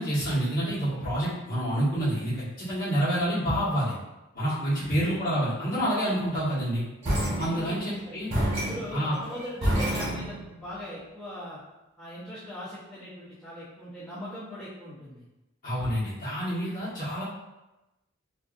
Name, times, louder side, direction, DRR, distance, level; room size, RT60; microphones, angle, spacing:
voice 1, 0.0-3.9 4.3-6.8 7.4-8.3 8.9-9.1 15.6-17.2, equal, 45° left, -11 dB, 1.2 m, -28 dB
sound 1, 7.0-7.9 8.3-10.7, equal, 30° right, 1.0 m, -28 dB
voice 2, 7.5-8.2 8.5-11.6 12.0-15.2, equal, 5° left, -13 dB, 0.7 m, -40 dB
2.5 x 2.4 x 2.4 m, 1.0 s
head